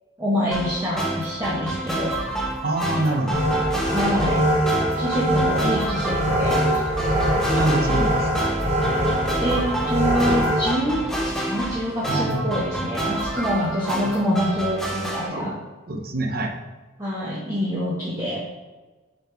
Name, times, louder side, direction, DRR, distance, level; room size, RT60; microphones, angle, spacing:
voice 1, 0.2-2.2 3.9-4.4 5.0-6.8 9.4-15.6 17.0-18.4, equal, 15° right, -8 dB, 1.2 m, -26 dB
sound 1, 0.5-15.3, right 1 dB, 5° left, 0.9 m, -29 dB
voice 2, 2.6-3.4 7.5-8.5 12.1-12.6 15.3-15.5 15.9-16.5, right 2 dB, 50° right, 3 dB, 0.9 m, -25 dB
sound 2, 3.3-10.7, equal, 35° right, 1.1 m, -22 dB
7.2 x 4.7 x 3.4 m, 1.2 s
head